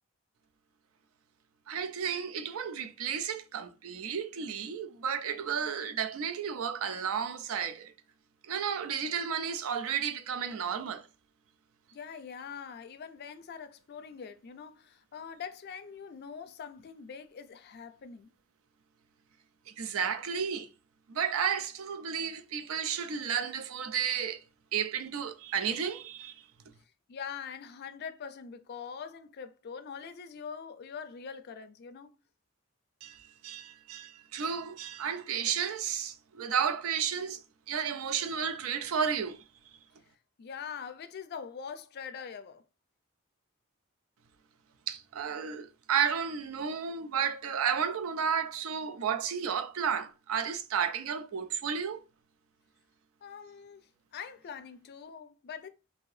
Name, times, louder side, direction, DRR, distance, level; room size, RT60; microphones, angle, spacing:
voice 1, 1.7-7.9 8.4-11.1 19.7-20.7 21.1-24.4 24.7-26.4 33.0-37.4 37.7-39.4 44.9-52.0, right 7 dB, 75° right, 0.4 m, -32 dB
voice 2, 11.9-18.3 27.1-32.1 40.4-42.6 53.2-53.8 54.1-55.7, left 6 dB, 50° left, 0.4 m, -43 dB
2.7 x 2.7 x 3.1 m
head